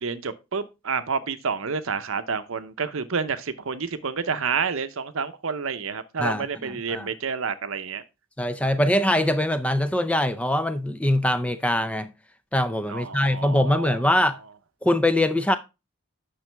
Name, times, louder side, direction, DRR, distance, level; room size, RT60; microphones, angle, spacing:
voice 1, 0.0-8.0 12.9-14.0, right 5 dB, 65° right, 0.7 m, -29 dB
voice 2, 6.2-7.1 8.4-12.1 12.5-14.4 14.8-15.6, left 1 dB, 5° left, 0.4 m, -23 dB
9.1 x 6.2 x 3.4 m
head